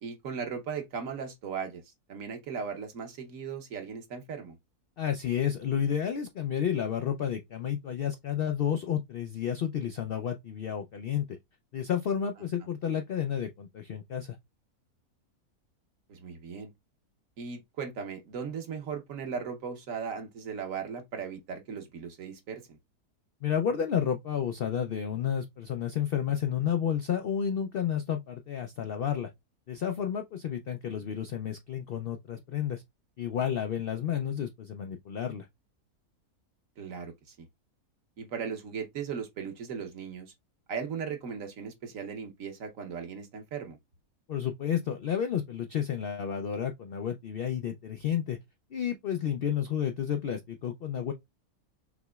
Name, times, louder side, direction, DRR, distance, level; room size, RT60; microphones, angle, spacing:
voice 1, 0.0-4.6 16.1-16.7 17.4-22.8 36.8-37.5 38.2-40.3 40.7-43.8, right 6 dB, 65° right, 1.3 m, -37 dB
voice 2, 5.0-11.4 11.7-14.4 23.4-29.3 29.7-32.8 33.2-35.5 44.3-48.4 48.7-51.1, left 8 dB, 90° left, 0.5 m, -31 dB
6.0 x 2.9 x 2.3 m
omnidirectional pair, 1.6 m